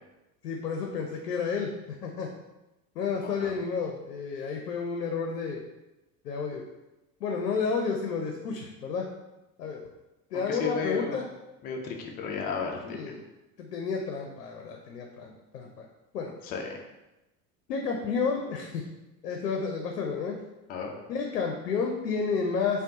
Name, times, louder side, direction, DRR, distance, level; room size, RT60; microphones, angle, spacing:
voice 1, 0.4-1.8 2.0-2.3 3.0-5.6 6.2-6.6 7.2-9.1 9.6-9.8 10.3-11.3 12.8-13.2 13.6-15.8 16.1-16.3 17.7-18.8 19.2-20.4 21.1-22.8, left 5 dB, 70° left, 1 dB, 0.6 m, -31 dB
voice 2, 3.2-3.5 10.3-11.2 11.6-13.1 16.4-16.8 20.7-20.9, left 5 dB, 20° left, 1 dB, 0.4 m, -34 dB
5.0 x 2.2 x 2.7 m, 0.99 s
figure-of-eight pair, 75°, 48 cm